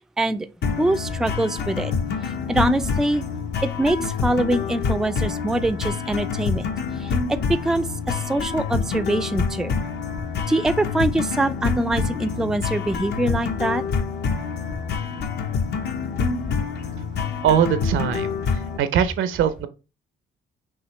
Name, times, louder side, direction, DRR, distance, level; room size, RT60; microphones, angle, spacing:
voice 1, 0.2-0.5 0.8-1.9 2.5-3.2 3.6-6.6 7.0-9.7 10.5-13.8, right 1 dB, 5° right, 0.3 m, -24 dB
sound 1, 0.6-18.8, left 5 dB, 60° left, 0.7 m, -27 dB
voice 2, 17.4-19.7, right 8 dB, 80° right, 0.6 m, -22 dB
5.6 x 2.8 x 3.1 m
cardioid pair, 90°, 20 cm